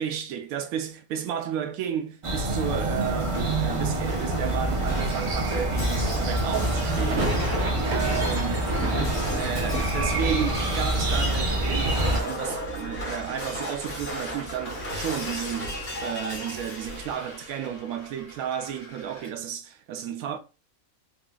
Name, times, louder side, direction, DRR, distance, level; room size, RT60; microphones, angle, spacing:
voice 1, 0.0-7.5 7.9-8.7 9.3-20.4, right 9 dB, 85° right, 1.0 m, -32 dB
sound 1, 2.2-12.2, right 1 dB, 50° right, 0.3 m, -26 dB
Shatter, 3.7-19.3, equal, 50° left, 1.4 m, -37 dB
sound 2, 6.9-12.8 13.1-13.9 14.2-14.3 14.6-16.7, right 1 dB, 70° right, 1.3 m, -35 dB
3.9 x 2.3 x 2.4 m
omnidirectional pair, 1.4 m